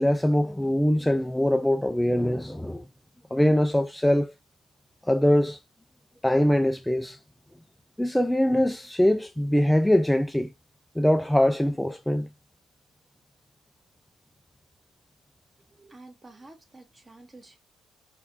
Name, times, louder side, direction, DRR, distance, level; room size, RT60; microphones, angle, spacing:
voice 1, 0.0-2.8 3.3-4.3 5.0-5.6 6.2-7.2 8.0-10.5 11.0-12.3, left 1 dB, 5° left, 0.5 m, -23 dB
voice 2, 15.7-17.6, right 2 dB, 25° right, 1.5 m, -50 dB
3.9 x 3.8 x 2.9 m
figure-of-eight pair, 45°, 0 cm